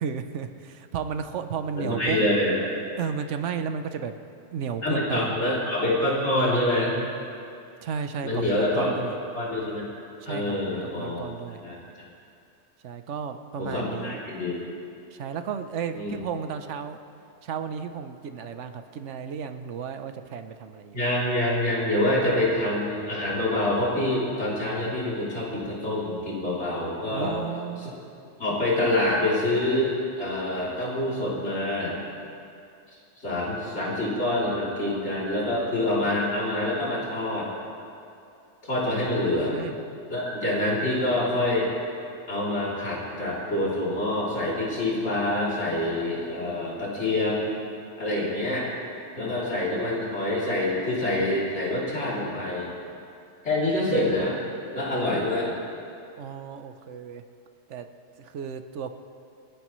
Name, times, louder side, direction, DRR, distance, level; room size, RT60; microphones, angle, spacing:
voice 1, 0.0-2.2 3.0-4.2 4.5-5.3 7.8-8.4 8.8-9.2 10.2-11.6 12.8-14.2 15.1-17.0 17.4-21.0 27.1-27.9 39.5-39.7 56.2-57.2 57.7-57.9 58.2-58.9, right 7 dB, 85° right, 8 dB, 1.1 m, -33 dB
voice 2, 1.7-2.5 4.8-6.9 8.2-8.9 9.3-9.8 10.3-11.2 11.6-11.8 13.6-14.6 15.9-16.2 20.9-27.4 27.8-27.9 28.4-31.9 33.2-37.5 38.6-39.6 40.1-41.7 42.3-47.6 48.0-48.7 49.2-52.7 53.4-54.4 54.7-55.6, left 1 dB, 70° left, -7 dB, 3.6 m, -26 dB
29.5 x 10.0 x 3.1 m, 2.5 s
omnidirectional pair, 1.2 m